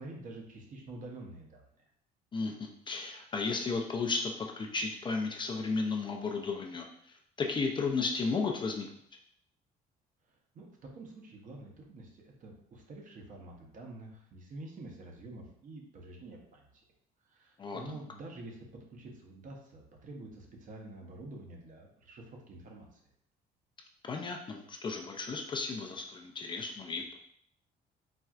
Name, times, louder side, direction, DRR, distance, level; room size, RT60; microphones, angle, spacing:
voice 1, 0.0-1.8 10.3-16.7 17.2-23.0, right 2 dB, 50° right, 1 dB, 0.8 m, -48 dB
voice 2, 2.3-8.9 17.6-17.8 24.0-27.2, left 4 dB, 30° left, 2 dB, 0.4 m, -34 dB
4.2 x 2.3 x 2.3 m, 0.69 s
cardioid pair, 110°, 17 cm